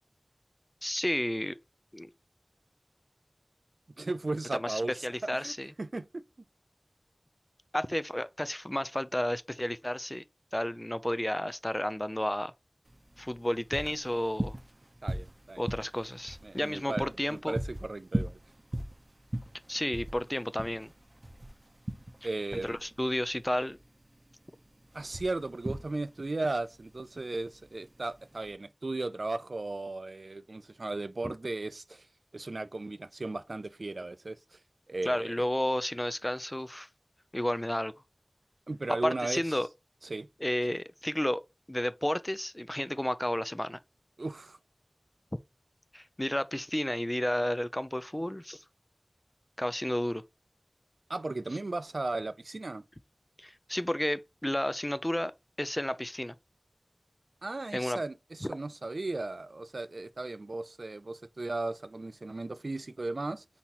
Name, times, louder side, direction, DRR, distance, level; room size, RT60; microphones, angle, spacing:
voice 1, 0.8-1.6 1.9-2.1 4.5-5.7 7.7-10.2 10.5-12.5 13.2-14.6 15.6-17.5 19.7-20.9 22.6-23.8 31.2-31.3 35.1-36.9 37.3-37.9 39.0-39.7 40.4-41.4 41.7-43.8 45.9-48.6 49.6-50.2 53.4-55.3 55.6-56.3 57.7-58.0 58.4-58.5, left 1 dB, 20° left, 0.4 m, -32 dB
voice 2, 4.0-5.1 5.4-6.2 15.0-15.6 16.4-18.4 22.2-22.8 24.9-32.1 32.3-34.6 34.9-35.5 38.7-39.4 40.0-40.3 44.2-44.6 51.1-52.8 57.4-63.4, right 2 dB, 85° right, 0.3 m, -36 dB
sound 1, 12.9-28.5, right 1 dB, 40° right, 0.6 m, -39 dB
4.2 x 3.9 x 2.9 m
wide cardioid pair, 40°, 0 cm